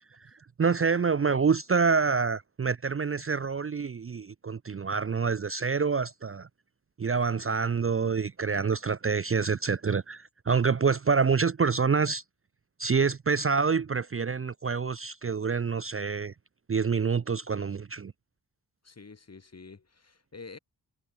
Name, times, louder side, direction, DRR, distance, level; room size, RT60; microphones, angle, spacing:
voice 1, 0.6-6.5 7.0-12.2 12.8-16.3 16.7-18.1, right 5 dB, 35° right, 0.5 m, -27 dB
voice 2, 18.8-20.6, left 4 dB, 40° left, 1.4 m, -47 dB
wide cardioid pair, 70°, 39 cm